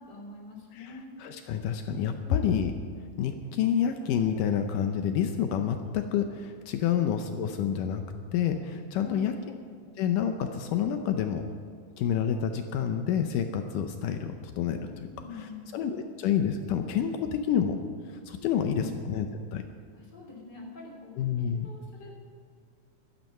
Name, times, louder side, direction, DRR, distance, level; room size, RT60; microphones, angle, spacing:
voice 1, 0.0-1.1 6.9-7.4 9.0-9.4 15.0-15.7 18.4-18.9 19.9-22.1, left 3 dB, 30° left, -2 dB, 3.2 m, -45 dB
voice 2, 1.2-2.7 3.2-8.0 8.3-9.3 10.0-11.4 12.0-15.1 15.7-17.8 18.3-19.3 19.5-19.6 21.2-21.7, left 8 dB, 80° left, 6 dB, 2.3 m, -28 dB
15.0 x 12.5 x 5.5 m, 2.1 s
omnidirectional pair, 3.9 m